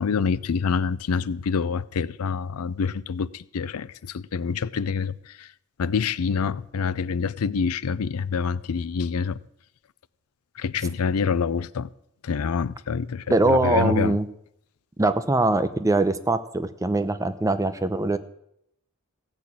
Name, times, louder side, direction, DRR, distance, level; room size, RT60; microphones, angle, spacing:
voice 1, 0.0-5.5 5.8-9.4 10.6-11.9 12.2-14.1, left 5 dB, 80° left, 0.5 m, -26 dB
voice 2, 13.3-14.3 15.0-18.2, right 2 dB, 15° right, 0.7 m, -22 dB
15.5 x 6.2 x 8.6 m
head